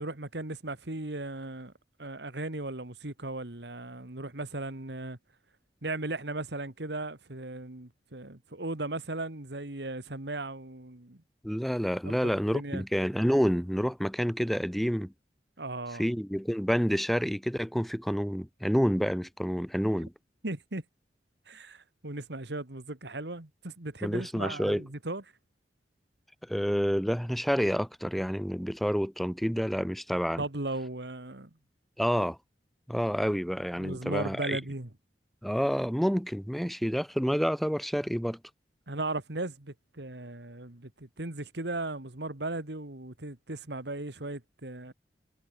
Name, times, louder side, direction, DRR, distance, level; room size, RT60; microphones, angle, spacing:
voice 1, 0.0-1.7 2.0-5.2 5.8-11.2 12.0-12.8 15.6-16.1 20.4-20.8 21.5-25.2 30.4-31.5 33.8-34.9 38.9-44.9, right 2 dB, 70° right, 2.2 m, -37 dB
voice 2, 11.4-15.1 16.0-20.1 24.0-24.8 26.5-30.4 32.0-32.4 32.9-34.6 35.4-38.4, equal, ahead, 2.2 m, -28 dB
head